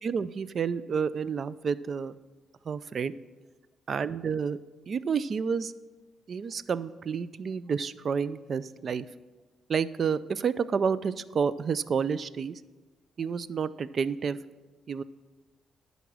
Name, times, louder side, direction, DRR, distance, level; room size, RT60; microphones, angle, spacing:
voice 1, 0.0-2.2 2.6-3.1 3.9-4.6 4.9-5.7 6.3-9.1 9.7-12.6 13.2-14.4 14.9-15.0, right 6 dB, 50° right, 17 dB, 0.3 m, -30 dB
10.5 x 4.1 x 6.1 m, 1.2 s
cardioid pair, 90°, 0 cm